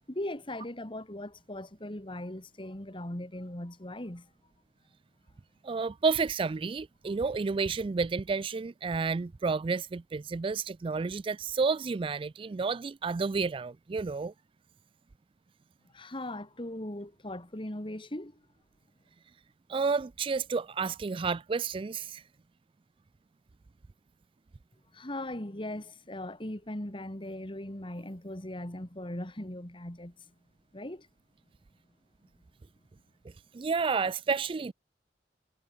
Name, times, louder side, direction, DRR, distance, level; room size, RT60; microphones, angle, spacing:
voice 1, 0.1-4.3 15.9-18.4 24.9-30.1 30.7-31.1, left 1 dB, 30° left, 2.4 m, -39 dB
voice 2, 5.6-14.3 19.7-22.2 33.5-34.7, right 4 dB, 30° right, 0.3 m, -30 dB
head